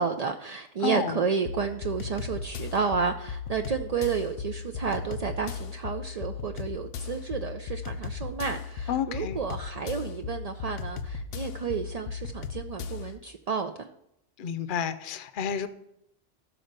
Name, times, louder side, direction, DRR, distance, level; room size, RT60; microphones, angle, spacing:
voice 1, 0.0-13.9, right 6 dB, 55° right, 6 dB, 0.4 m, -31 dB
voice 2, 0.8-1.2 8.9-9.4 14.4-15.7, left 8 dB, 50° left, 13 dB, 0.7 m, -30 dB
sound 1, 1.5-13.2, left 6 dB, 85° left, 1.0 m, -37 dB
13.0 x 4.5 x 6.6 m, 0.79 s
omnidirectional pair, 1.2 m